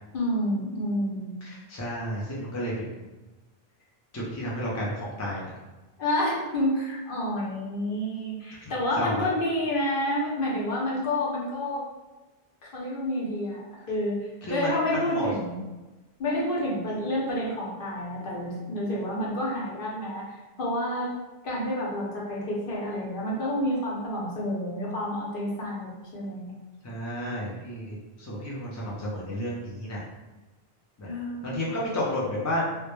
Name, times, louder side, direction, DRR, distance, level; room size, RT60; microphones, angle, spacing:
voice 1, 0.1-1.4 6.0-11.8 12.6-14.2 14.5-15.6 16.2-20.3 20.6-21.1 21.4-26.6 31.0-31.7, left 1 dB, 60° left, -5 dB, 0.8 m, -29 dB
voice 2, 1.4-3.0 4.1-5.4 8.6-9.2 14.4-14.7 15.1-15.3 26.8-30.0 31.0-31.1 31.4-32.6, left 1 dB, 30° left, -5 dB, 0.3 m, -32 dB
2.2 x 2.1 x 3.0 m, 1.1 s
omnidirectional pair, 1.0 m